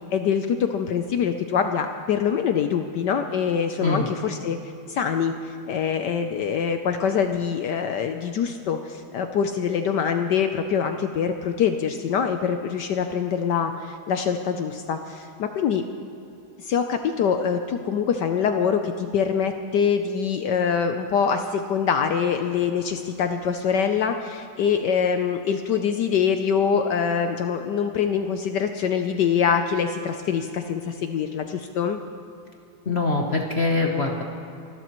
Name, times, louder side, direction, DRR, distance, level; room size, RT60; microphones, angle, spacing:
voice 1, 0.1-4.6 4.9-15.8 16.6-32.0, left 7 dB, 70° left, 7 dB, 1.1 m, -24 dB
voice 2, 32.8-34.2, left 3 dB, 45° left, 2 dB, 0.8 m, -23 dB
28.5 x 12.5 x 3.0 m, 2.7 s
omnidirectional pair, 2.3 m